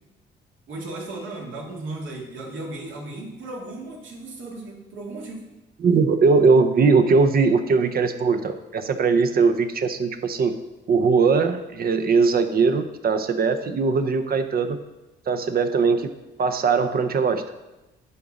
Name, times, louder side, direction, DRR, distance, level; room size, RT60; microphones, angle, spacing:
voice 1, 0.7-5.5, right 2 dB, 75° right, -2 dB, 2.2 m, -35 dB
voice 2, 5.8-10.6 10.9-14.8 15.3-16.1 16.4-17.5, right 4 dB, 50° right, 9 dB, 0.7 m, -20 dB
11.0 x 3.8 x 4.0 m, 1.0 s
cardioid pair, 90°, 20 cm